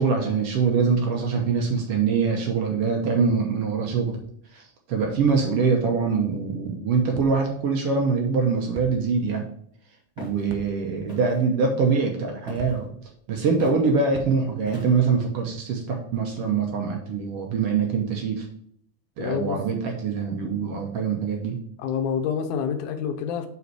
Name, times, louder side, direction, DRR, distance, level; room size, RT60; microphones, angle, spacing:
voice 1, 0.0-4.2 4.5-9.4 10.2-12.9 13.3-18.5 19.2-21.6, right 5 dB, 65° right, 1 dB, 1.6 m, -24 dB
sound 1, 7.1-7.8 8.7-9.4 10.5-11.1 12.6-13.1 14.1-14.7, right 4 dB, 85° right, 2.2 m, -42 dB
Walk footsteps, 10.2-10.4 11.1-11.5 12.5-12.8 13.6-13.8 14.7-15.2, left 1 dB, 20° left, 1.2 m, -39 dB
voice 2, 19.2-19.6 21.8-23.5, left 7 dB, 90° left, 7 dB, 2.2 m, -27 dB
5.4 x 5.4 x 4.7 m, 0.65 s
omnidirectional pair, 3.4 m